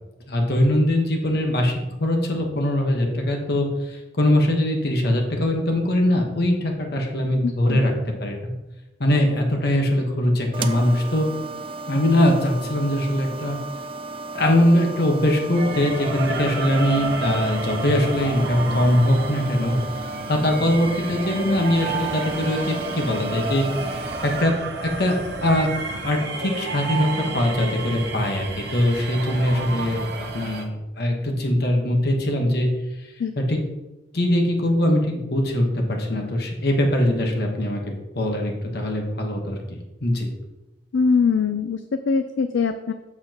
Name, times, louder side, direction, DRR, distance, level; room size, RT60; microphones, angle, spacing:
voice 1, 0.3-7.9 8.2-8.5 9.0-11.3 11.9-13.6 14.3-19.8 20.3-23.7 24.2-24.5 24.8-25.7 26.0-32.7 33.0-33.6 34.1-40.3, left 1 dB, 55° left, 1 dB, 1.2 m, -22 dB
voice 2, 7.4-7.8 33.2-33.3 40.9-42.9, left 5 dB, 75° left, 9 dB, 0.4 m, -22 dB
sound 1, 10.5-24.4, right 3 dB, 30° right, 0.4 m, -35 dB
sound 2, 15.5-30.7, right 3 dB, 60° right, 0.8 m, -31 dB
7.8 x 6.9 x 2.9 m, 1.0 s
head